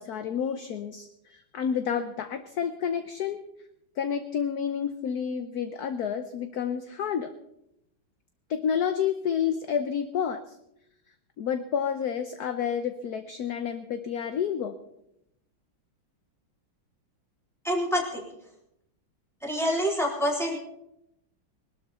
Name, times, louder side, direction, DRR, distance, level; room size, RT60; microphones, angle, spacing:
voice 1, 0.0-3.4 4.0-7.3 8.5-10.4 11.4-14.8, left 8 dB, 60° left, 9 dB, 1.1 m, -29 dB
voice 2, 17.6-18.2 19.4-20.6, equal, ahead, -2 dB, 3.7 m, -26 dB
20.5 x 13.0 x 4.2 m, 0.79 s
omnidirectional pair, 2.2 m